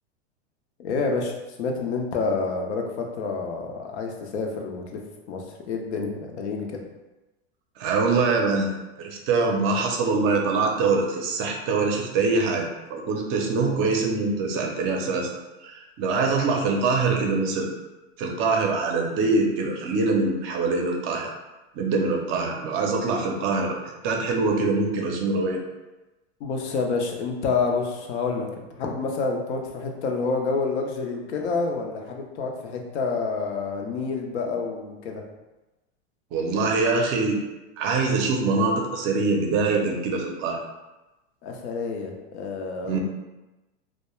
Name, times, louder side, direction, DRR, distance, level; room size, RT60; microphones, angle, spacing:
voice 1, 0.8-1.3 1.6-5.0 5.3-6.8 26.4-28.5 28.8-35.2 41.4-43.0, left 4 dB, 85° left, 2 dB, 0.6 m, -28 dB
voice 2, 7.8-15.3 15.6-17.7 18.2-21.3 21.7-23.7 24.0-25.6 36.3-37.4 37.8-40.6 42.8-43.0, right 3 dB, 40° right, 1 dB, 0.5 m, -24 dB
2.2 x 2.1 x 3.0 m, 1.1 s
supercardioid pair, 125°, 33 cm